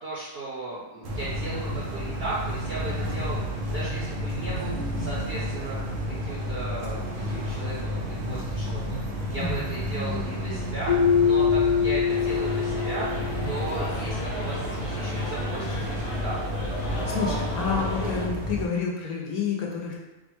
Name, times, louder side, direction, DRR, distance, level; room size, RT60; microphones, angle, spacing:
voice 1, 0.0-9.0 9.3-13.1 13.4-16.4, right 2 dB, 55° right, -7 dB, 0.7 m, -36 dB
sound 1, 1.0-18.7, equal, 85° right, 0.4 m, -31 dB
voice 2, 9.4-9.7 16.8-20.0, left 5 dB, 75° left, -2 dB, 1.1 m, -29 dB
Keyboard (musical), 10.9-13.7, left 7 dB, 90° left, 1.3 m, -23 dB
sound 2, 12.1-18.3, equal, 45° left, 0.4 m, -35 dB
3.9 x 2.1 x 3.0 m, 1.1 s
omnidirectional pair, 1.6 m